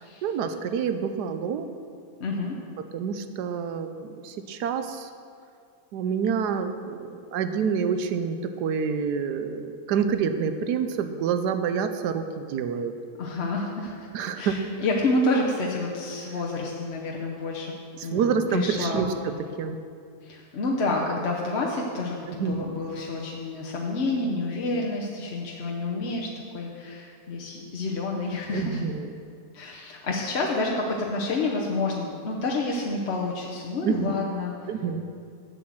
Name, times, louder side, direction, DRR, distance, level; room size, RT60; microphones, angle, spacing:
voice 1, 0.2-1.7 2.9-5.1 5.9-12.9 14.1-14.6 18.0-19.1 19.6-19.8 22.3-22.7 28.5-29.1 33.8-34.1 34.7-35.1, right 6 dB, 90° right, 9 dB, 1.2 m, -27 dB
voice 2, 2.2-2.6 13.2-14.1 14.3-17.7 18.0-19.1 20.2-28.8 29.5-34.7, left 2 dB, 50° left, -2 dB, 1.0 m, -29 dB
7.7 x 7.1 x 7.5 m, 2.3 s
omnidirectional pair, 1.7 m